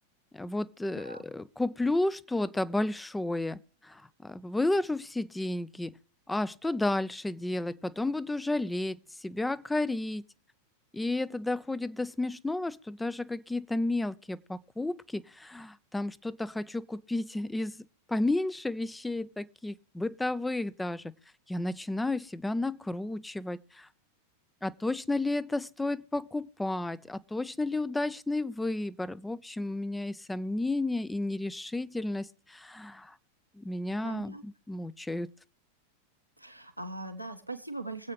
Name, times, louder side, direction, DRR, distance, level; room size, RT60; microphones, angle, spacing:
voice 1, 0.3-3.6 3.8-5.9 6.3-10.2 10.9-17.8 18.1-21.0 21.5-23.9 24.6-33.1 33.6-35.3, left 2 dB, 5° left, 0.6 m, -32 dB
voice 2, 0.9-1.2 34.0-34.4 36.4-38.1, right 2 dB, 90° right, 1.3 m, -40 dB
24.5 x 8.5 x 3.1 m
figure-of-eight pair, 90°, 0 cm